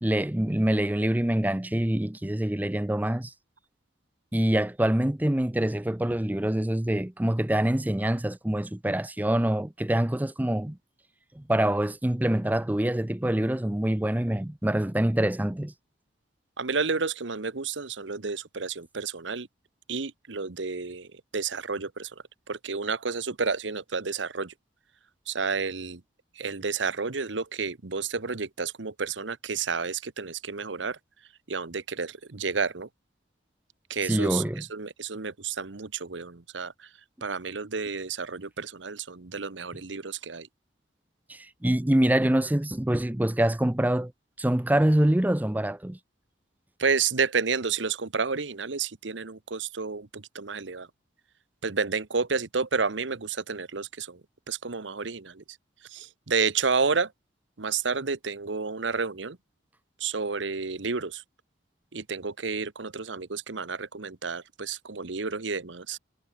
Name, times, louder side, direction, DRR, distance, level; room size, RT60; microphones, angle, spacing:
voice 1, 0.0-3.3 4.3-10.8 11.4-15.7 34.0-34.6 41.3-44.1 44.4-46.0, right 1 dB, 10° right, 0.5 m, -25 dB
voice 2, 16.6-19.5 19.9-21.1 21.3-22.1 22.5-24.5 25.3-26.0 26.4-31.0 31.5-32.9 33.9-36.7 37.2-40.5 46.8-50.9 51.6-54.2 54.5-55.4 55.9-57.1 57.6-59.4 60.0-61.2 61.9-66.0, right 5 dB, 80° right, 1.1 m, -30 dB
head